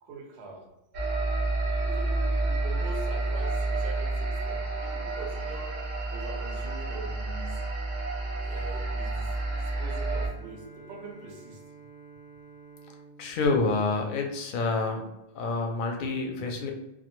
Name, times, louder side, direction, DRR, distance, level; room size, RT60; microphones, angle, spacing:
voice 1, 0.0-0.7 1.9-5.8 6.1-7.7 8.4-11.6, right 3 dB, 85° right, 2 dB, 0.8 m, -43 dB
sound 1, 0.9-10.3, right 2 dB, 55° right, 0.6 m, -30 dB
Bowed string instrument, 9.2-14.8, right 4 dB, 10° left, 0.4 m, -52 dB
voice 2, 13.2-15.1 15.3-16.7, left 3 dB, 60° left, 2 dB, 0.6 m, -28 dB
2.2 x 2.1 x 2.9 m, 0.93 s
omnidirectional pair, 1.1 m